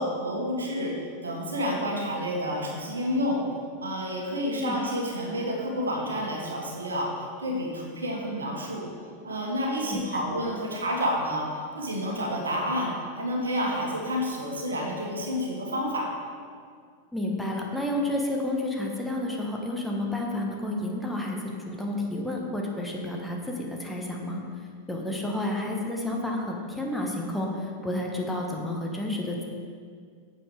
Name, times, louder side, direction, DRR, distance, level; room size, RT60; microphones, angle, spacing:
voice 1, 0.0-3.4 3.8-8.9 9.2-16.1, equal, 75° right, 0 dB, 1.7 m, -29 dB
voice 2, 9.9-10.2 17.1-21.4 21.6-29.4, left 1 dB, 5° left, -1 dB, 1.3 m, -30 dB
8.9 x 7.1 x 5.0 m, 2.1 s
figure-of-eight pair, 90°, 0 cm